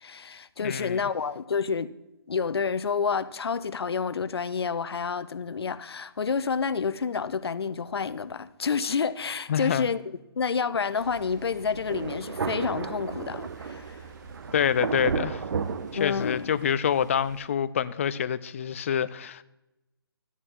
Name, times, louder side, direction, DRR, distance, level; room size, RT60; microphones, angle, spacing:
voice 1, 0.0-1.9 2.3-10.0 10.4-14.0 15.9-16.5, left 5 dB, 80° left, 0.7 m, -29 dB
voice 2, 0.6-1.0 9.5-9.9 14.5-15.4 16.0-19.4, left 8 dB, 30° left, 0.4 m, -26 dB
sound 1, 11.0-17.4, right 2 dB, 45° right, 2.4 m, -48 dB
Thunder, 11.9-16.7, right 5 dB, 70° right, 0.6 m, -33 dB
13.0 x 9.7 x 3.7 m
hypercardioid pair, 165°, 13 cm